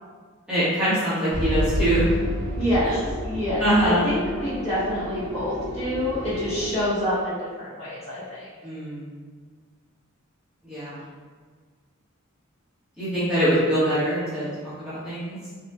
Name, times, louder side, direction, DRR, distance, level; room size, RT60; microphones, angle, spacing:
voice 1, 0.5-2.1 2.8-2.9 3.6-4.0 8.6-9.1 10.7-11.0 13.0-14.5 14.8-15.4, right 1 dB, 5° right, -14 dB, 1.3 m, -23 dB
sound 1, 1.3-6.8, equal, 60° right, 0.8 m, -30 dB
voice 2, 2.5-3.0 3.2-8.5, left 1 dB, 30° left, -11 dB, 1.4 m, -27 dB
3.8 x 3.1 x 2.2 m, 1.5 s
head